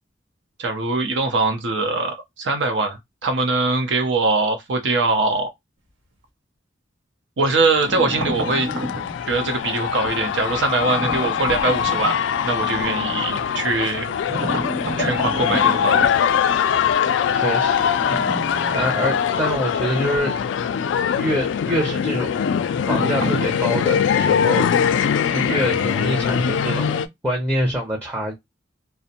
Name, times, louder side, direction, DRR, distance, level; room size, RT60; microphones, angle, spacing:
voice 1, 0.6-5.5 7.4-8.7 9.3-12.2 12.4-14.1 14.4-14.7 15.0-16.1, right 3 dB, 70° right, 0.6 m, -22 dB
sound 1, 7.5-27.1, left 7 dB, 75° left, 0.3 m, -22 dB
sound 2, 7.8-9.2 10.7-12.2 14.3-16.1 17.9-20.3 20.6-20.7 22.9-23.6, right 1 dB, 90° right, 1.0 m, -30 dB
voice 2, 17.3-17.9 18.7-20.4 21.2-22.4 22.9-24.7 25.3-27.0 27.2-28.3, equal, 10° right, 0.6 m, -25 dB
2.5 x 2.0 x 2.7 m
head